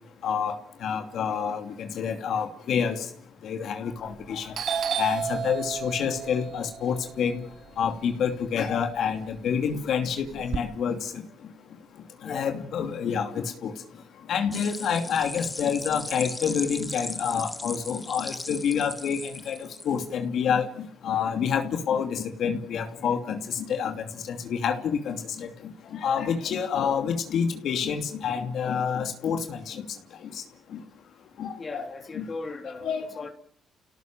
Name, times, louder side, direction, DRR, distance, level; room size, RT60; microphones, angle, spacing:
voice 1, 0.2-0.5 0.8-3.1 3.4-7.4 7.8-11.1 12.2-13.7 14.3-25.5 25.9-29.8 31.4-31.9 32.1-32.2 32.8-33.1, left 7 dB, 70° left, 2.8 m, -28 dB
Doorbell, 4.0-4.3 4.5-8.7 9.1-10.6, right 7 dB, 55° right, 1.2 m, -32 dB
sound 1, 14.5-20.0, left 2 dB, 15° left, 1.5 m, -37 dB
voice 2, 31.6-33.3, left 3 dB, 35° left, 3.2 m, -38 dB
29.5 x 17.5 x 7.6 m
cardioid pair, 90°, 0 cm